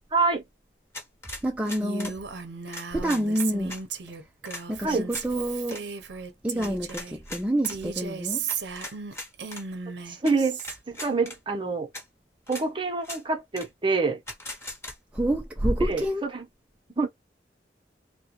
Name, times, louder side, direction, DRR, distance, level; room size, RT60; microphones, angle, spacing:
voice 1, 0.1-0.4 4.8-5.1 10.1-10.6 10.9-11.9 12.5-14.2 15.9-16.4 17.0-17.1, right 4 dB, 30° right, 0.8 m, -26 dB
sound 1, 0.9-2.2 2.7-3.8 4.5-4.6 5.1-5.3 5.6-5.8 6.6-7.8 8.5-9.6 10.3-10.4 10.6-11.4 11.9-12.0 12.5-12.7 13.0-13.2 13.6-13.7 14.3-15.0, left 1 dB, 15° left, 0.9 m, -39 dB
voice 2, 1.4-2.2 2.9-3.8 4.7-5.8 6.4-8.4 15.1-16.3, right 1 dB, 5° right, 0.4 m, -27 dB
Female speech woman speaking, 1.8-7.2 7.6-10.8, right 6 dB, 70° right, 0.7 m, -35 dB
3.5 x 2.2 x 2.9 m
head